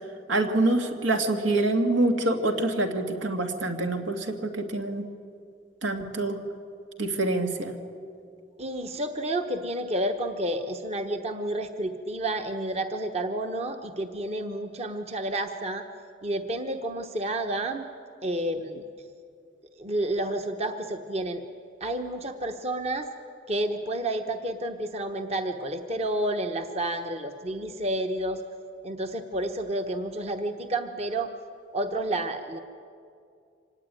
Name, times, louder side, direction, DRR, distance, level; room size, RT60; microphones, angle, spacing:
voice 1, 0.3-5.1 5.8-6.4 7.0-7.8, right 2 dB, 85° right, 4 dB, 2.4 m, -26 dB
voice 2, 8.6-15.8 16.2-17.9 18.2-18.8 19.8-21.4 21.8-23.1 23.5-28.4 28.8-31.3 31.7-32.6, right 1 dB, 35° right, 6 dB, 1.1 m, -30 dB
25.0 x 19.5 x 9.3 m, 2.4 s
head